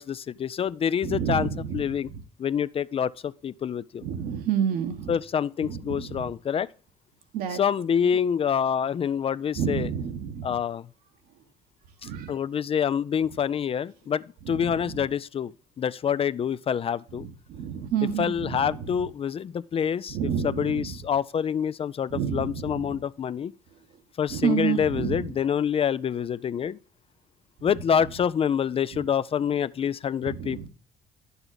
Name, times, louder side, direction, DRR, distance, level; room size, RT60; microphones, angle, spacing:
voice 1, 0.0-1.5 1.7-2.1 2.4-4.0 5.1-6.7 7.5-9.9 10.4-10.8 12.3-15.5 15.8-17.3 18.2-20.2 20.4-23.5 24.2-26.8 27.6-30.7, left 8 dB, 40° left, 0.4 m, -26 dB
voice 2, 1.0-2.2 4.0-5.2 5.6-6.3 7.3-7.6 8.0-8.2 9.5-10.6 12.0-12.3 14.4-15.1 17.2-18.9 20.1-21.0 22.1-23.0 24.3-25.3 28.9-29.0 30.3-30.7, right 8 dB, 75° right, 1.2 m, -30 dB
9.8 x 7.1 x 3.9 m
hypercardioid pair, 60°, 15 cm